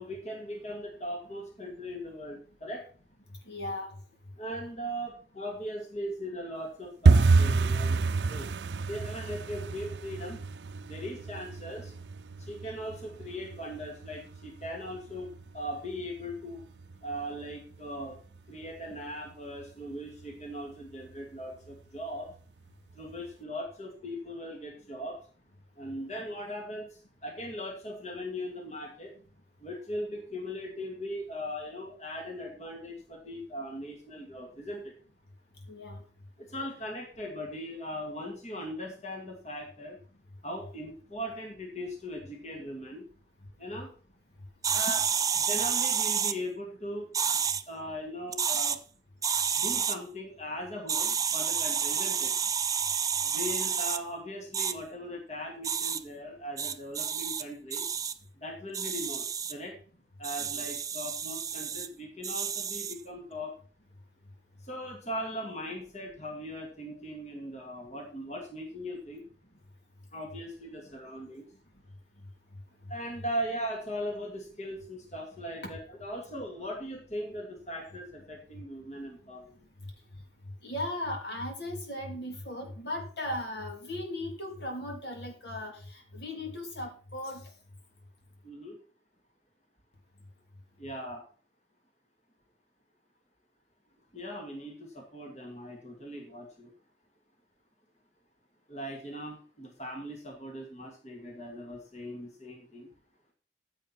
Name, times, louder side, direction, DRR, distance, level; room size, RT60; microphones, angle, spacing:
voice 1, 0.0-2.8 4.4-8.5 8.9-10.4 10.9-11.9 12.4-15.3 15.5-16.6 17.0-18.2 18.5-22.3 23.0-25.2 25.8-26.9 27.2-29.1 29.6-34.9 36.4-40.0 40.4-43.0 43.6-43.9 44.7-45.0 45.3-47.4 47.7-48.8 49.6-52.3 53.2-57.8 58.4-59.2 59.5-59.8 60.2-63.5 64.6-69.2 70.1-71.4 72.9-79.5 88.4-88.8 90.8-91.2 94.1-96.7 98.7-102.9, equal, 40° left, 1 dB, 2.3 m, -39 dB
voice 2, 3.5-3.9 35.7-36.0 80.6-87.4, left 1 dB, 70° left, 2 dB, 3.3 m, -37 dB
sound 1, 7.0-17.8 18.0-18.7 19.0-19.3 19.5-19.9 20.2-20.3 20.8-21.4 21.7-21.8 22.3-22.4, right 4 dB, 75° right, 0.5 m, -28 dB
sound 2, 44.6-46.4 47.1-47.6 48.3-48.8 49.2-50.0 50.9-54.0 54.5-54.7 55.6-56.0 56.6-57.4 57.7-58.1 58.7-59.5 60.2-61.9 62.2-63.0, right 7 dB, 20° right, 0.6 m, -30 dB
14.5 x 7.8 x 4.4 m, 0.41 s
head